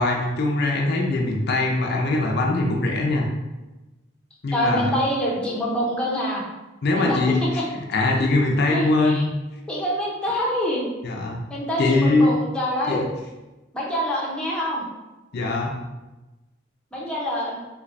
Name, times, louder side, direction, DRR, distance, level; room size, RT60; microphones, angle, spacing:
voice 1, 0.0-3.2 4.4-4.9 6.8-7.6 7.9-9.3 11.0-11.4 11.8-12.3 12.9-13.1 15.3-15.8, left 2 dB, 55° left, 0 dB, 0.4 m, -21 dB
voice 2, 4.5-6.4 6.9-7.2 8.7-9.2 9.7-10.8 11.5-13.1 13.7-14.8 16.9-17.6, equal, 5° left, -6 dB, 0.6 m, -25 dB
3.2 x 3.1 x 2.5 m, 1.1 s
head